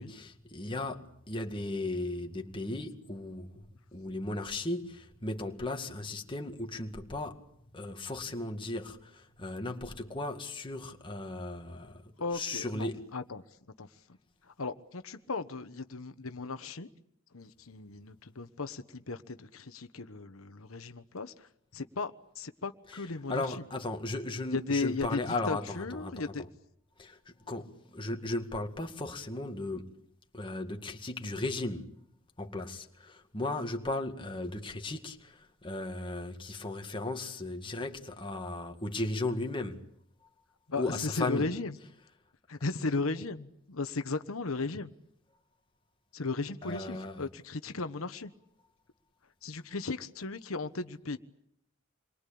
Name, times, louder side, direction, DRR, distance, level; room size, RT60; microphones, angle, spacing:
voice 1, 0.0-3.6 3.9-7.4 7.7-12.0 12.3-13.1 23.3-26.5 27.0-29.9 30.3-32.0 32.4-39.9 40.8-41.5 46.6-47.2, left 2 dB, 25° left, 2.1 m, -36 dB
voice 2, 12.2-14.0 14.4-16.9 17.3-23.6 24.5-26.5 40.7-41.8 42.5-44.9 46.1-48.3 49.4-51.2, left 3 dB, 80° left, 1.2 m, -36 dB
28.0 x 23.0 x 8.6 m
head